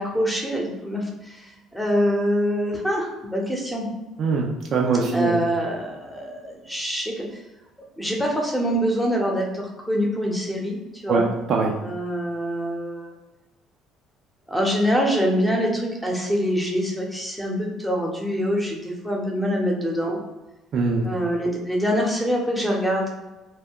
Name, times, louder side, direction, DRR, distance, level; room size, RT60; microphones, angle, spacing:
voice 1, 0.0-3.9 5.1-7.3 8.0-11.3 11.8-13.1 14.5-20.2 21.0-23.1, equal, 5° left, -1 dB, 0.9 m, -25 dB
voice 2, 4.2-5.4 11.1-11.7 20.7-21.1, right 4 dB, 55° right, -1 dB, 0.4 m, -22 dB
2.2 x 2.2 x 3.6 m, 1.0 s
supercardioid pair, 70°, 0 cm